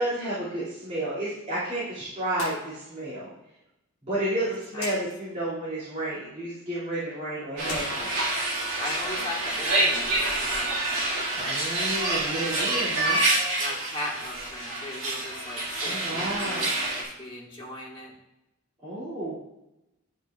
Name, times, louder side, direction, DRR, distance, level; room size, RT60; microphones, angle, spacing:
voice 1, 0.0-3.3 4.1-8.2 11.4-13.2 15.3-15.4 15.8-16.8 18.8-19.4, right 1 dB, 30° right, -13 dB, 2.4 m, -31 dB
sound 1, 2.3-2.6 2.9-3.0 4.7-5.0 7.5-8.9, left 3 dB, 65° left, 2.0 m, -39 dB
sound 2, 7.6-17.0, right 2 dB, 70° right, 1.9 m, -27 dB
voice 2, 8.8-10.8 13.6-18.1, left 2 dB, 25° left, -4 dB, 1.6 m, -38 dB
10.5 x 4.6 x 2.4 m, 0.92 s
head